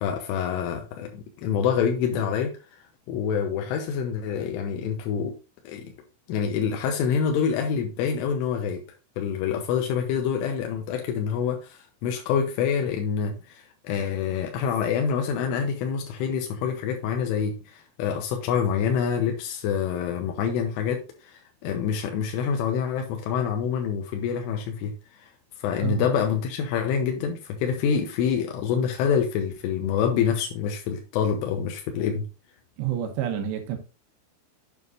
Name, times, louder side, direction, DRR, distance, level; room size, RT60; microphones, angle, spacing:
voice 1, 0.0-2.5 3.1-5.3 5.7-5.9 6.3-8.8 9.2-24.9 25.2-25.3 25.6-32.3, left 7 dB, 90° left, 3.5 m, -26 dB
voice 2, 32.8-33.8, right 10 dB, 70° right, 3.0 m, -28 dB
8.1 x 7.2 x 2.6 m
omnidirectional pair, 5.6 m